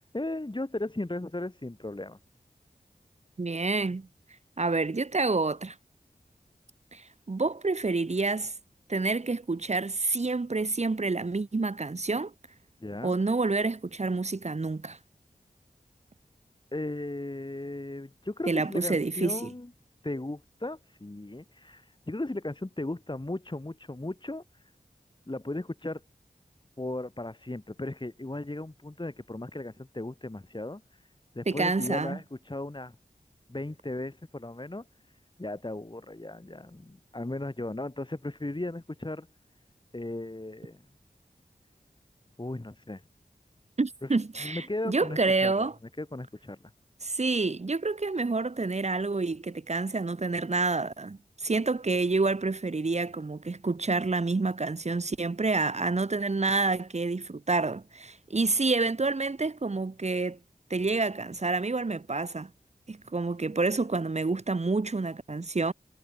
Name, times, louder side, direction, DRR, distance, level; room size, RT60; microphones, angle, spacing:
voice 1, 0.0-2.2 12.8-13.2 16.7-19.7 20.0-24.4 25.3-26.0 26.8-30.8 31.3-33.0 33.5-34.9 35.4-39.3 39.9-40.8 42.4-43.0 44.0-44.1 44.4-45.7 46.0-46.7, left 2 dB, 30° left, 3.0 m, -36 dB
voice 2, 3.4-4.1 4.6-5.7 6.9-8.5 8.9-12.3 13.0-15.0 18.5-19.5 31.5-32.2 43.8-45.7 47.0-60.4 60.7-62.5 62.9-65.7, right 3 dB, 45° right, 1.0 m, -28 dB
wide cardioid pair, 55°, 16 cm